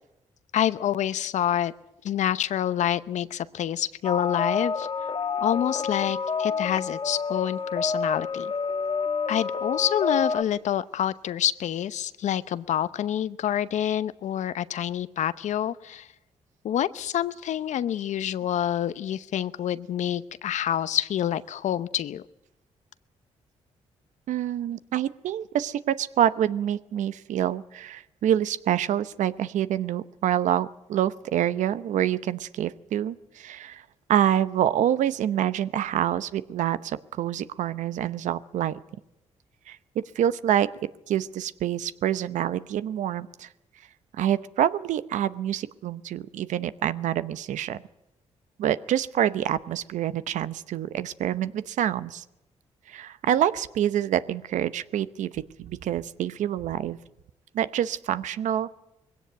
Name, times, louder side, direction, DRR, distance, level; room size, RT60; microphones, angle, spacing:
voice 1, 0.5-1.7 2.0-4.9 5.4-8.5 9.3-16.1 16.6-22.2, left 10 dB, 75° left, 16 dB, 0.8 m, -27 dB
sound 1, 4.0-10.4, left 5 dB, 45° left, 1.2 m, -29 dB
voice 2, 24.3-33.8 34.1-38.8 39.7-40.7 41.1-43.5 44.2-47.8 48.6-52.2 52.9-57.0 57.5-58.7, right 10 dB, 80° right, 14 dB, 0.8 m, -26 dB
21.0 x 17.0 x 9.3 m, 0.90 s
cardioid pair, 75°, 12 cm